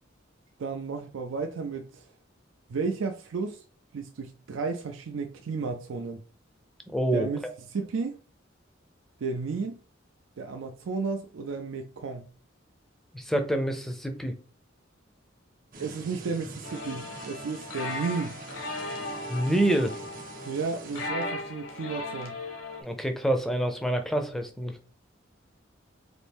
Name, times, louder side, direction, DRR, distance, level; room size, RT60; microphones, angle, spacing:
voice 1, 0.6-2.0 2.7-3.6 3.9-6.2 7.1-7.4 7.7-8.2 9.2-9.8 10.4-12.3 15.8-18.4 20.5-22.4, right 4 dB, 80° right, 0.4 m, -33 dB
voice 2, 6.9-7.5 13.1-14.3 19.3-20.0 22.8-24.8, right 1 dB, ahead, 0.5 m, -27 dB
sound 1, 15.7-21.1, right 3 dB, 45° right, 0.8 m, -45 dB
sound 2, 16.6-22.8, left 2 dB, 75° left, 1.0 m, -37 dB
4.1 x 2.6 x 3.5 m
head